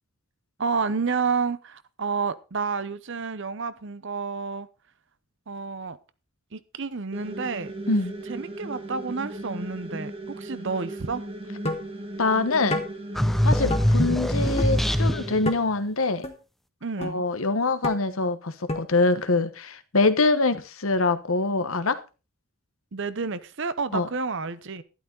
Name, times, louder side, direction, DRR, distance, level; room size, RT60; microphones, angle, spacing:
voice 1, 0.6-4.7 5.5-6.0 6.5-7.7 8.3-11.2 16.8-17.2 22.9-24.8, right 5 dB, 60° right, 0.8 m, -30 dB
sound 1, 7.1-15.4, right 1 dB, 25° right, 1.6 m, -37 dB
sound 2, 11.7-11.9 12.7-12.9 13.7-13.9 14.6-14.7 15.5-15.6 16.2-16.3 17.0-17.1 17.8-18.0 18.7-18.9, left 2 dB, 30° left, 1.4 m, -28 dB
voice 2, 12.2-12.8 13.4-16.3 17.0-22.0 23.9-24.1, left 3 dB, 75° left, 1.1 m, -24 dB
sound 3, 13.1-15.5, equal, ahead, 0.6 m, -22 dB
12.0 x 11.5 x 3.9 m
head